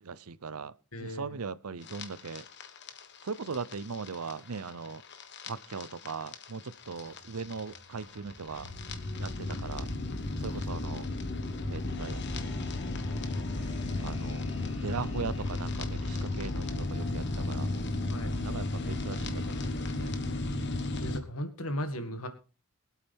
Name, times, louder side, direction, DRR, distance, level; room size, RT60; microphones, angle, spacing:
voice 1, 0.0-0.7 1.0-2.5 3.2-5.0 5.5-8.7 9.2-9.9 10.4-11.1 11.7-12.5 14.0-14.6 14.8-17.7 18.3-20.1, right 5 dB, 80° right, 0.7 m, -39 dB
voice 2, 0.9-1.4 18.1-18.4 21.0-22.3, equal, 75° left, 2.1 m, -36 dB
sound 1, 1.8-21.2, left 2 dB, 50° left, 1.4 m, -34 dB
sound 2, 6.8-19.7, equal, 20° left, 2.0 m, -50 dB
23.5 x 8.5 x 3.6 m
head